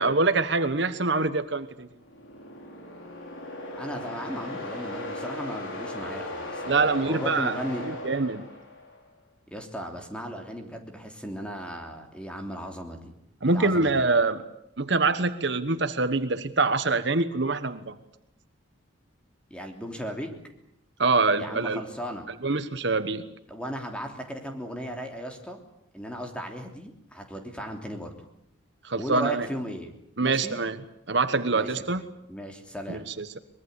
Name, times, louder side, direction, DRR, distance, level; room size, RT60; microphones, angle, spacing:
voice 1, 0.0-1.9 6.7-7.6 8.0-8.4 13.4-14.4 14.8-18.0 21.0-21.8 22.4-23.2 28.8-29.5 30.2-30.8 31.1-32.0 32.9-33.4, right 3 dB, 60° right, 11 dB, 1.2 m, -25 dB
sound 1, 2.0-9.0, left 1 dB, 80° left, 5.1 m, -37 dB
voice 2, 3.8-7.8 9.5-13.1 13.4-14.0 19.5-20.3 21.4-22.2 23.5-25.6 25.9-28.2 28.9-29.9 30.2-30.6 31.5-31.8 32.3-33.0, equal, 5° left, 3 dB, 3.2 m, -36 dB
23.5 x 21.5 x 8.3 m, 0.78 s
head